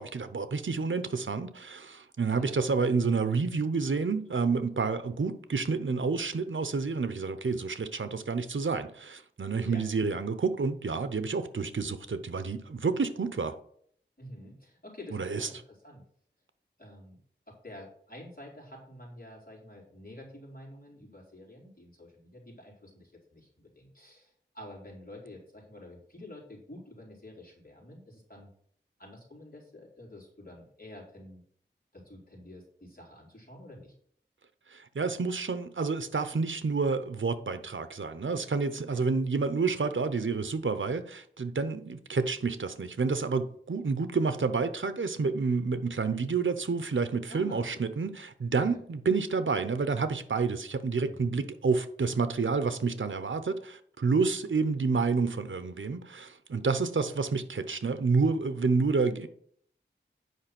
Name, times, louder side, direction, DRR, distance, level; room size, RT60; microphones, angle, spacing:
voice 1, 0.0-13.6 15.1-15.5 34.7-59.3, right 4 dB, 85° right, 0.7 m, -29 dB
voice 2, 14.2-16.0 16.8-17.2 17.5-28.5 29.0-31.4 31.9-33.9 38.9-39.0 47.3-47.8 48.6-48.8 51.1-51.5, left 1 dB, 50° left, 4.0 m, -48 dB
9.4 x 5.2 x 5.9 m
wide cardioid pair, 55°, 19 cm